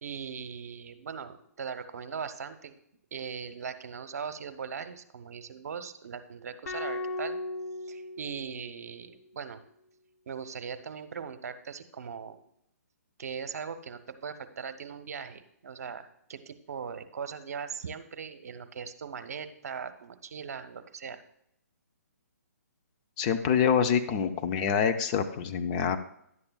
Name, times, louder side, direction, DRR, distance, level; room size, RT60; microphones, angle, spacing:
voice 1, 0.0-2.8 3.1-7.4 7.9-9.6 10.3-12.4 13.2-21.2, right 6 dB, 65° right, 10 dB, 0.8 m, -39 dB
sound 1, 6.6-9.0, left 2 dB, 65° left, 2.4 m, -37 dB
voice 2, 23.2-26.0, left 7 dB, 30° left, 8 dB, 0.5 m, -26 dB
11.0 x 8.6 x 2.3 m, 0.74 s
hypercardioid pair, 145°, 9 cm